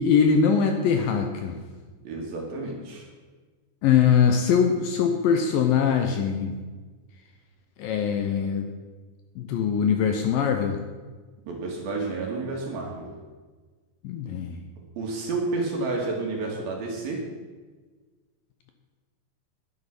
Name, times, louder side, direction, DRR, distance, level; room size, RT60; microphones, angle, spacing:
voice 1, 0.0-1.6 3.8-6.5 7.8-8.7 9.4-10.8 14.0-14.6, left 7 dB, 75° left, 5 dB, 2.1 m, -22 dB
voice 2, 2.0-3.1 11.5-13.1 15.0-17.2, right 3 dB, 65° right, -1 dB, 3.5 m, -30 dB
11.0 x 10.0 x 6.0 m, 1.4 s
omnidirectional pair, 4.9 m